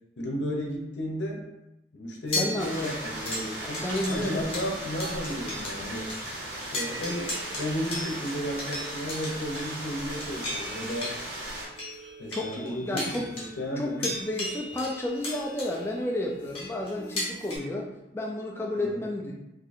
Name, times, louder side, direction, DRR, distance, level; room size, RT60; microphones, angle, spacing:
voice 1, 0.2-1.4 1.9-6.1 6.7-11.1 12.2-14.1 18.8-19.1, equal, 80° left, 0 dB, 0.7 m, -33 dB
sound 1, 2.3-5.8 6.1-6.2 6.6-17.6, left 1 dB, 30° left, 0.9 m, -37 dB
voice 2, 2.4-3.0 3.6-4.5 12.3-13.3 13.8-17.9 18.1-19.3, left 1 dB, 15° left, -1 dB, 0.3 m, -32 dB
sound 2, 2.6-11.7, right 1 dB, 70° right, 1.3 m, -37 dB
2.7 x 2.5 x 4.1 m, 0.91 s
head